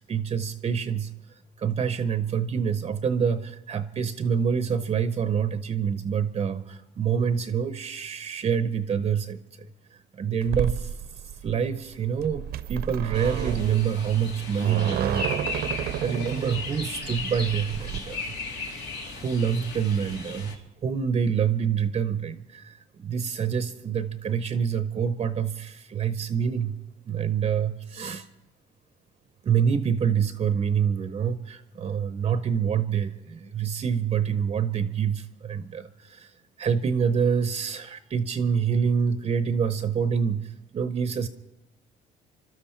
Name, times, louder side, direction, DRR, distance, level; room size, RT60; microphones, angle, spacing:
voice 1, 0.0-9.4 10.1-11.0 11.4-15.3 15.9-18.2 19.0-26.8 27.1-28.3 29.4-36.3 36.6-41.3, right 7 dB, 35° right, 12 dB, 0.7 m, -26 dB
sound 1, 10.4-18.0, right 11 dB, 70° right, 0.7 m, -32 dB
sound 2, 13.1-20.5, left 4 dB, 75° left, 2.4 m, -36 dB
25.5 x 12.5 x 4.4 m, 0.96 s
cardioid pair, 110°, 17 cm